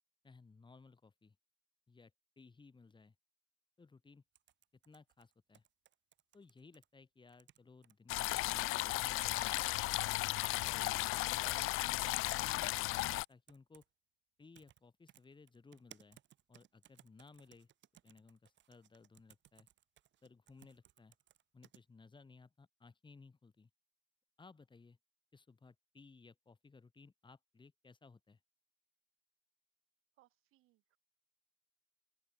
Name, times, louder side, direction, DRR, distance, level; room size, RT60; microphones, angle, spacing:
voice 1, 0.2-1.4 1.9-2.1 2.4-3.1 3.8-4.2 4.8-5.6 6.3-9.8 10.6-13.8 14.4-16.2 16.5-17.7 18.0-19.7 20.2-21.1 21.5-23.7 24.4-25.0 25.3-28.4, left 4 dB, 20° left, 4.6 m, -60 dB
sound 1, 4.3-6.9 7.3-7.9 8.4-8.5 9.0-9.7 10.0-11.0 11.8-12.1 12.3-13.9 14.5-14.8 15.1-21.8, right 12 dB, 60° right, 2.3 m, -64 dB
sound 2, 8.1-13.3, left 19 dB, 80° left, 0.5 m, -35 dB
voice 2, 30.2-31.0, right 18 dB, 85° right, 6.3 m, -72 dB
open air
cardioid pair, 115°, 21 cm